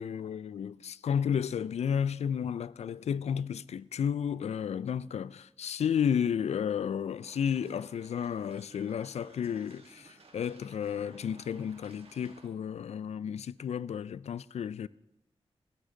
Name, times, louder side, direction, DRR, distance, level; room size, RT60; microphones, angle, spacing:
voice 1, 0.0-14.9, left 8 dB, 80° left, 0.4 m, -32 dB
sound 1, 7.2-12.5, right 3 dB, 65° right, 2.2 m, -57 dB
16.0 x 11.5 x 3.8 m
cardioid pair, 70°, 11 cm